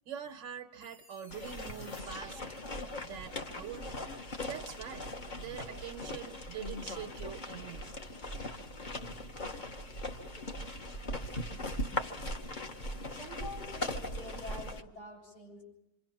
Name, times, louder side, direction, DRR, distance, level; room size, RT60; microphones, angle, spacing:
voice 1, 0.1-2.4 3.0-3.9 4.5-5.1 5.4-7.9, right 9 dB, 90° right, 4 dB, 1.7 m, -44 dB
sound 1, 0.8-3.7, left 1 dB, 55° left, 4.9 m, -56 dB
sound 2, 1.3-14.8, left 1 dB, 35° left, 1.0 m, -40 dB
voice 2, 13.1-15.6, left 2 dB, 70° left, 0 dB, 8.7 m, -46 dB
26.5 x 25.5 x 5.9 m, 0.89 s
omnidirectional pair, 1.9 m